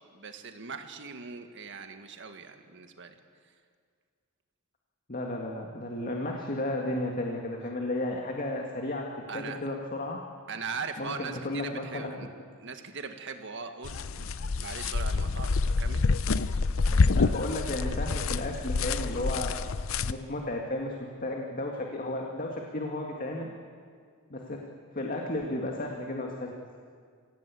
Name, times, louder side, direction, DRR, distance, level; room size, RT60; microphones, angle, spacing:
voice 1, 0.1-3.2 9.3-9.6 10.5-12.3 12.6-16.0, right 5 dB, 60° right, 6 dB, 1.7 m, -40 dB
voice 2, 5.1-9.1 9.3-10.2 11.0-12.3 17.1-19.5 20.0-23.5 24.3-24.6 24.9-26.5, left 1 dB, 40° left, 1 dB, 2.0 m, -33 dB
sound 1, 13.8-20.1, left 4 dB, 65° left, 0.6 m, -27 dB
26.5 x 16.5 x 8.5 m, 2.1 s
head